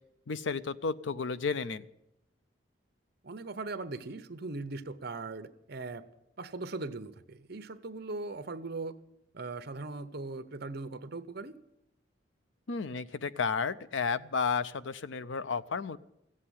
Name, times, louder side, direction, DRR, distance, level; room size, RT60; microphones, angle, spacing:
voice 1, 0.3-1.9 12.7-16.0, left 5 dB, 75° left, 15 dB, 0.6 m, -32 dB
voice 2, 3.2-6.1 6.4-9.0 9.3-11.6, right 3 dB, 55° right, 11 dB, 0.9 m, -39 dB
16.0 x 7.6 x 10.0 m, 0.84 s
head